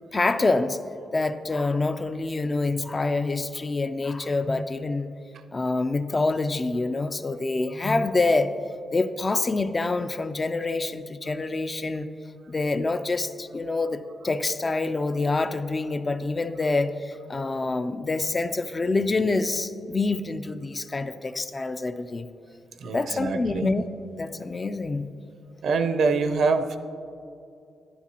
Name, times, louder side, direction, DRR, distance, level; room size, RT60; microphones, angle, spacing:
voice 1, 0.1-0.8 1.1-5.1 5.5-8.5 8.9-12.1 12.5-22.3 22.9-23.8 24.2-25.1, left 3 dB, 25° left, 10 dB, 0.3 m, -26 dB
voice 2, 22.8-23.8 25.6-26.8, right 4 dB, 65° right, 9 dB, 0.5 m, -25 dB
11.0 x 9.9 x 2.8 m, 2.5 s
wide cardioid pair, 135°, 0 cm